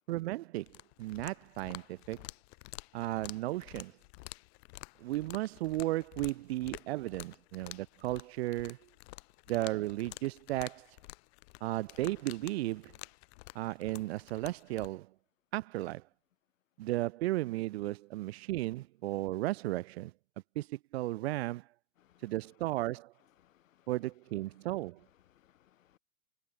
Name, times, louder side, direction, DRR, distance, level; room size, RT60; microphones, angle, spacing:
voice 1, 0.1-2.3 2.9-3.9 5.0-8.8 9.5-10.9 11.6-12.9 13.5-15.1 15.5-16.0 16.8-20.1 20.6-21.6 22.2-23.1 23.9-25.0, right 17 dB, 50° right, 0.6 m, -35 dB
sound 1, 0.6-14.9, left 24 dB, 50° left, 3.6 m, -50 dB
voice 2, 22.0-22.4 23.2-23.9 24.5-24.6 25.1-26.0, left 11 dB, 65° left, 1.0 m, -68 dB
figure-of-eight pair, 95°, 42 cm